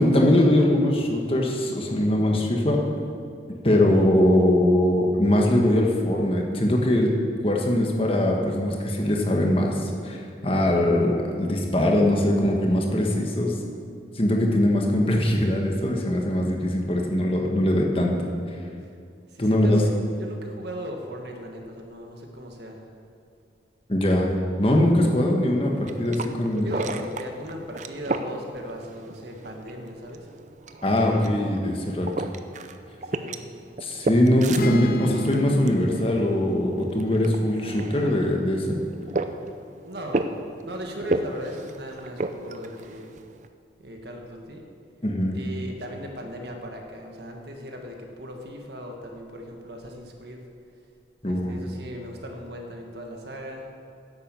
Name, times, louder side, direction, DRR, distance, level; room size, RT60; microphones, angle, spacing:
voice 1, 0.0-2.8 3.6-7.1 7.4-13.6 14.1-18.3 19.4-19.8 23.9-26.7 30.8-32.1 33.8-38.8 45.0-45.4 51.2-51.6, left 1 dB, 30° left, 1 dB, 1.4 m, -22 dB
voice 2, 19.3-22.8 26.6-30.3 33.1-33.4 39.8-43.1 43.8-44.6 45.3-50.4 51.3-53.7, equal, 65° right, 2 dB, 1.6 m, -38 dB
sound 1, 25.6-43.5, right 2 dB, 40° right, 0.5 m, -34 dB
sound 2, 34.6-38.3, right 1 dB, 50° left, 0.6 m, -33 dB
11.0 x 8.1 x 7.6 m, 2.5 s
head